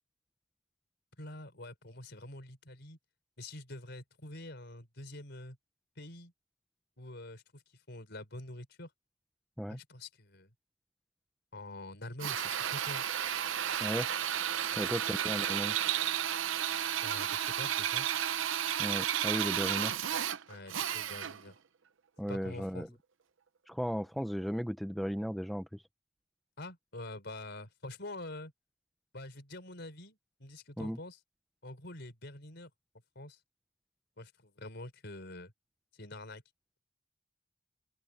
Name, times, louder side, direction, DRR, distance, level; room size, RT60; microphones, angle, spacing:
voice 1, 1.2-3.0 3.4-5.6 6.0-6.3 7.0-7.6 7.9-8.9 9.7-10.5 11.5-13.1 14.7-14.9 17.0-18.1 20.5-21.6 22.3-22.9 26.6-28.5 29.1-31.2 31.6-32.7 33.1-33.4 34.2-35.5 36.0-36.4, left 1 dB, 60° left, 4.6 m, -46 dB
Drill, 12.2-21.5, right 10 dB, 75° right, 0.8 m, -32 dB
voice 2, 14.8-15.8 18.8-19.9 22.2-22.9 23.7-25.8 30.8-31.0, equal, ahead, 0.7 m, -35 dB
open air
head